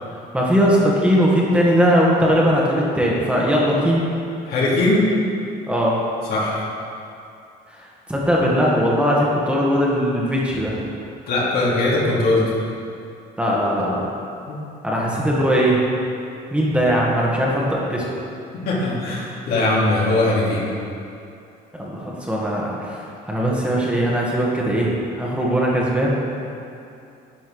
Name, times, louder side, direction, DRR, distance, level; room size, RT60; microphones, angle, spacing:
voice 1, 0.3-4.0 5.7-6.0 8.1-10.7 13.4-14.0 14.8-15.8 16.5-18.1 21.7-26.1, equal, 5° right, -4 dB, 1.7 m, -19 dB
voice 2, 4.5-5.1 6.3-6.6 11.3-12.4 14.5-14.6 18.6-20.6, left 2 dB, 65° left, -5 dB, 2.6 m, -20 dB
10.0 x 5.3 x 6.4 m, 2.6 s
cardioid pair, 110°, 17 cm